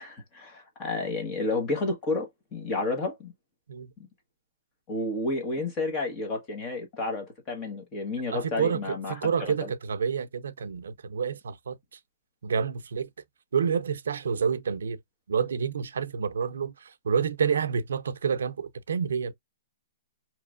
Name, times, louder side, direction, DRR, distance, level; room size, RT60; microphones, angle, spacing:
voice 1, 0.0-3.3 4.0-4.1 4.9-9.7, left 2 dB, 15° left, 1.2 m, -31 dB
voice 2, 8.3-11.8 12.4-13.1 13.5-15.0 15.3-19.3, right 6 dB, 85° right, 0.6 m, -28 dB
5.0 x 3.1 x 2.4 m
hypercardioid pair, 180°, 0 cm